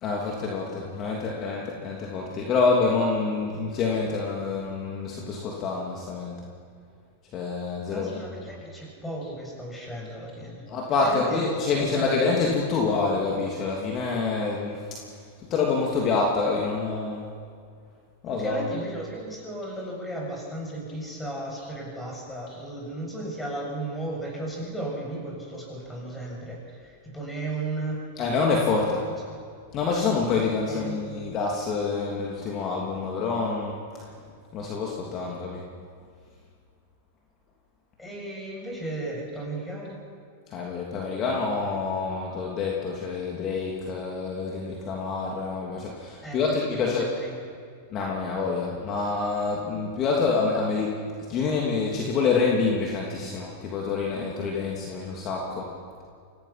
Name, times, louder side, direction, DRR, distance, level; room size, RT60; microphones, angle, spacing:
voice 1, 0.0-6.4 7.3-8.1 10.7-14.8 15.5-17.2 18.2-18.6 28.2-29.1 29.7-33.7 34.5-35.6 40.5-47.1 47.9-51.0 51.3-55.7, left 4 dB, 40° left, -2 dB, 3.0 m, -27 dB
voice 2, 7.9-10.6 11.0-12.2 18.3-28.0 30.6-31.0 38.0-40.0 46.2-47.4, right 1 dB, 10° left, -2 dB, 7.6 m, -35 dB
25.0 x 17.5 x 6.0 m, 2.2 s
hypercardioid pair, 115°, 0 cm